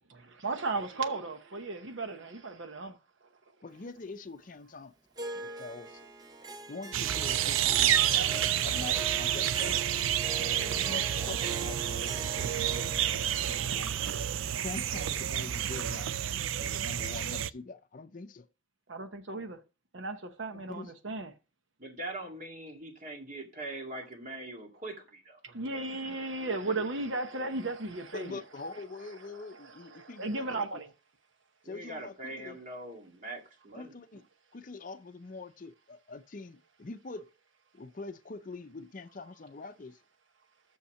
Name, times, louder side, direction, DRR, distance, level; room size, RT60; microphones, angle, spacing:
voice 1, 0.1-3.0 10.7-11.0 18.9-19.6 19.9-21.3 25.4-28.4 29.6-30.9, right 3 dB, 70° right, 0.9 m, -35 dB
voice 2, 3.6-4.9 5.3-6.1 6.7-9.9 10.9-12.0 12.3-14.0 14.6-16.2 16.6-18.5 20.5-20.9 28.1-30.8 31.6-32.6 33.7-34.2 34.5-37.3 37.7-40.0, left 3 dB, 40° left, 0.5 m, -44 dB
Harp, 5.2-15.7, right 3 dB, 20° right, 0.6 m, -43 dB
sound 1, 6.9-17.5, right 10 dB, 85° right, 0.4 m, -29 dB
voice 3, 21.8-25.4 31.6-34.2, right 2 dB, 40° right, 2.1 m, -42 dB
6.5 x 5.6 x 6.4 m
head